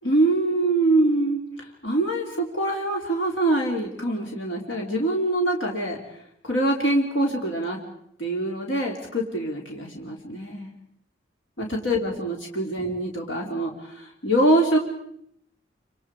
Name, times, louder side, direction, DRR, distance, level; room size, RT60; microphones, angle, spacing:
voice 1, 0.0-7.8 8.2-10.7 11.6-14.8, right 1 dB, 85° left, 0 dB, 3.2 m, -24 dB
29.0 x 26.0 x 4.9 m, 0.72 s
head